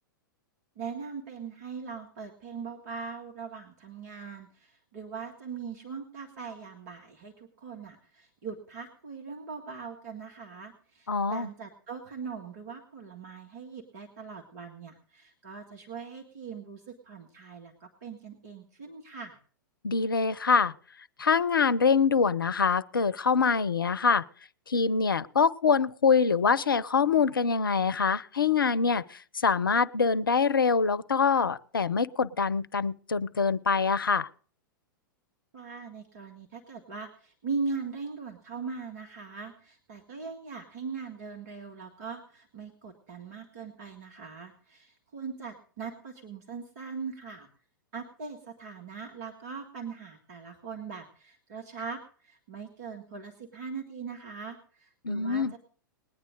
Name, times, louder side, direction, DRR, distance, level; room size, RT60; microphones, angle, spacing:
voice 1, 0.8-19.4 35.5-47.5 47.9-55.6, right 5 dB, 50° right, 2 dB, 1.8 m, -40 dB
voice 2, 11.1-11.5 19.8-20.7 21.2-24.2 24.7-34.3 55.0-55.5, left 5 dB, 75° left, 15 dB, 0.6 m, -25 dB
20.0 x 9.4 x 3.9 m, 0.44 s
figure-of-eight pair, 100°, 11 cm